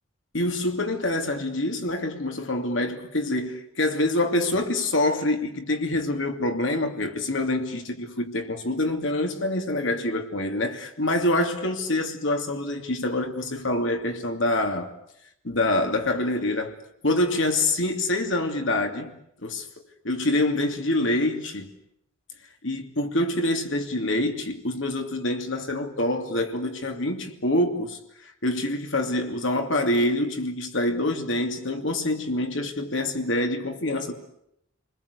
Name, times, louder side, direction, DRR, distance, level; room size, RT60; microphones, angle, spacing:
voice 1, 0.3-14.9 15.4-16.8 17.0-19.1 19.4-19.7 20.0-21.7 22.6-34.1, left 1 dB, 70° left, 2.8 m, -26 dB
30.0 x 21.0 x 8.3 m
head